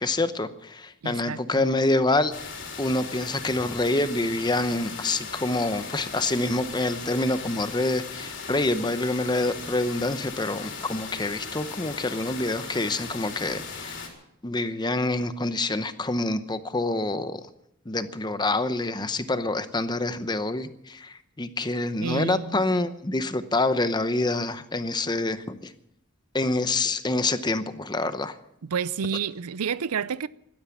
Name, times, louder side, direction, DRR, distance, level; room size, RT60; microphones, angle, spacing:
voice 1, 0.0-2.3 2.8-14.0 14.4-17.4 17.9-25.7 26.3-28.4, left 2 dB, 20° left, 0.8 m, -26 dB
voice 2, 1.0-1.7 22.0-22.6 28.6-30.3, right 6 dB, 90° right, 0.5 m, -30 dB
sound 1, 2.3-14.1, left 5 dB, 55° left, 3.6 m, -38 dB
16.0 x 12.0 x 7.2 m
head